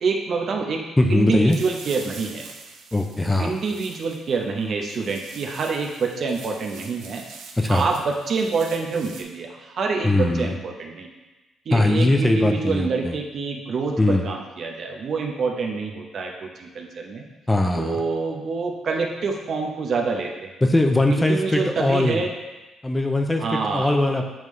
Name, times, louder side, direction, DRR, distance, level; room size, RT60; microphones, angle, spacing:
voice 1, 0.0-0.8 1.1-2.4 3.4-7.2 7.7-11.1 11.7-17.2 17.7-20.5 21.1-22.3 23.4-24.2, right 4 dB, 60° right, 1 dB, 0.9 m, -26 dB
voice 2, 1.0-1.6 2.9-3.5 7.6-7.9 10.0-10.5 11.7-13.1 14.0-14.2 17.5-18.0 20.6-22.2 22.8-24.2, left 2 dB, 15° left, 3 dB, 0.6 m, -20 dB
sound 1, 1.5-9.2, right 5 dB, 90° right, 0.7 m, -44 dB
8.9 x 3.6 x 3.2 m, 1.1 s
cardioid pair, 90°, 0 cm